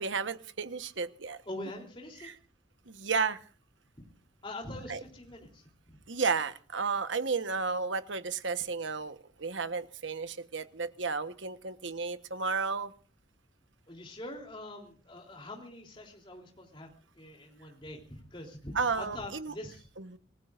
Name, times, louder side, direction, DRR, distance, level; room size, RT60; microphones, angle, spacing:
voice 1, 0.0-1.4 2.2-2.3 2.9-3.4 4.9-5.0 6.1-12.9 18.7-19.5 20.0-20.2, right 5 dB, 85° right, 10 dB, 1.2 m, -33 dB
voice 2, 1.5-2.3 4.4-5.7 13.9-16.9 17.2-19.9, left 1 dB, 25° left, 0 dB, 3.5 m, -44 dB
26.5 x 19.5 x 2.6 m, 0.40 s
head